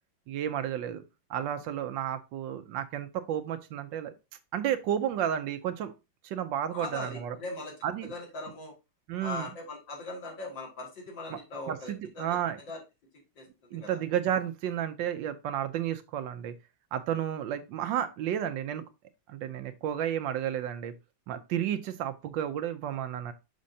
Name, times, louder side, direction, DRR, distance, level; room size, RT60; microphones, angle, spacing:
voice 1, 0.3-1.0 1.3-4.1 4.5-5.9 6.2-7.4 7.8-8.1 9.1-9.5 11.3-11.4 11.7-12.6 13.7-16.5 16.9-18.8 19.3-20.9 21.3-23.3, right 10 dB, 75° right, 10 dB, 1.2 m, -32 dB
voice 2, 6.7-7.7 8.1-8.7 9.2-12.4 12.7-12.8 13.4-13.5 13.8-14.0, left 3 dB, 65° left, -1 dB, 2.8 m, -40 dB
6.4 x 6.0 x 2.7 m, 0.26 s
omnidirectional pair, 2.2 m